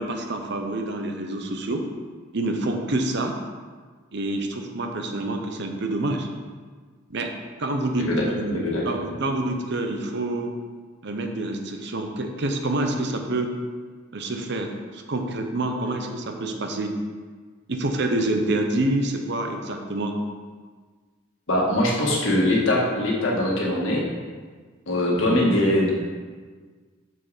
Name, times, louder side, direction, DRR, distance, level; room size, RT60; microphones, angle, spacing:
voice 1, 0.0-1.9 2.3-3.4 4.1-6.3 7.1-7.3 7.6-10.5 11.0-13.5 14.1-17.0 17.7-20.2, right 2 dB, 60° right, 4 dB, 0.8 m, -27 dB
voice 2, 8.5-9.0 21.5-24.0 24.9-25.9, left 1 dB, 75° left, -3 dB, 1.7 m, -22 dB
6.8 x 6.4 x 4.1 m, 1.5 s
head